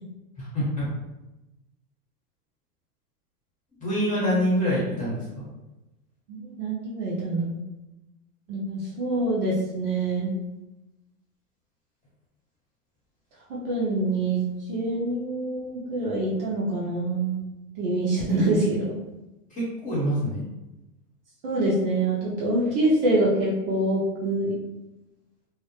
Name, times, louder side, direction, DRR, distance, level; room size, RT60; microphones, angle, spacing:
voice 1, 0.4-0.9 3.8-5.2 19.5-20.4, equal, 15° left, -8 dB, 1.1 m, -25 dB
voice 2, 6.3-7.6 8.5-10.3 13.5-14.4 14.7-18.9 21.4-24.5, right 2 dB, 40° right, -5 dB, 0.5 m, -25 dB
2.1 x 2.0 x 2.9 m, 1.0 s
hypercardioid pair, 120°, 46 cm